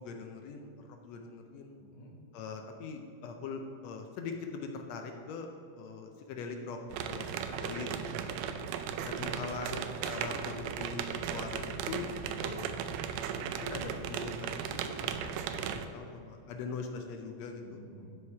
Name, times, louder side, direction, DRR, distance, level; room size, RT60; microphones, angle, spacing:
voice 1, 0.0-1.8 2.3-5.5 5.8-7.9 9.0-12.1 12.4-12.8 13.4-17.8, left 4 dB, 75° left, 4 dB, 1.7 m, -42 dB
voice 2, 1.8-2.1 7.4-8.7 17.6-18.1, left 1 dB, 35° left, -3 dB, 0.5 m, -52 dB
sound 1, 6.9-15.9, right 8 dB, 80° right, 1.7 m, -36 dB
11.5 x 4.9 x 4.7 m, 2.5 s
omnidirectional pair, 3.3 m